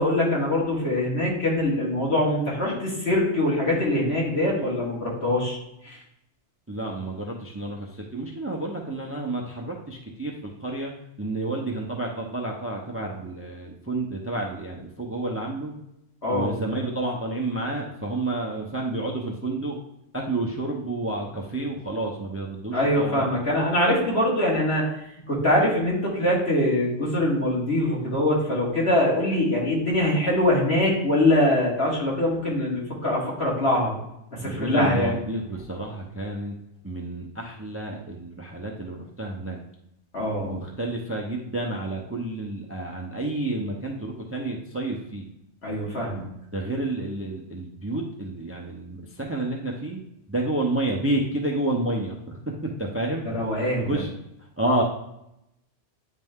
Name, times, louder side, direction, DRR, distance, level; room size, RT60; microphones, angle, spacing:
voice 1, 0.0-5.6 5.8-6.0 16.2-16.5 22.7-24.8 25.3-33.9 34.3-35.2 40.1-40.6 45.6-46.2 53.3-54.0, left 1 dB, 60° left, -5 dB, 2.3 m, -23 dB
voice 2, 6.7-10.9 11.2-15.7 16.3-19.8 20.1-23.2 34.4-36.5 36.8-39.6 40.4-45.3 46.5-50.0 50.3-52.4 52.8-53.3 53.8-54.1 54.6-54.8, right 2 dB, 15° right, 0 dB, 0.6 m, -30 dB
9.5 x 3.3 x 3.6 m, 0.83 s
omnidirectional pair, 1.2 m